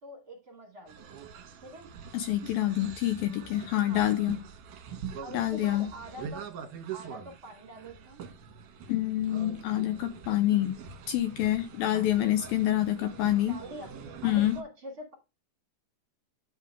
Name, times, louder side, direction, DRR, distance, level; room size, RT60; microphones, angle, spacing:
voice 1, 0.0-1.4 1.6-1.9 3.9-4.0 5.2-6.4 6.9-8.3 11.9-12.1 13.5-13.9 14.2-15.1, equal, 35° right, 2.5 m, -45 dB
sound 1, 0.9-14.6, right 7 dB, 65° right, 2.5 m, -44 dB
voice 2, 2.1-4.4 5.3-5.9 8.9-10.8 11.1-13.6 14.2-14.6, left 13 dB, 80° left, 2.2 m, -27 dB
10.5 x 3.7 x 4.7 m
omnidirectional pair, 4.7 m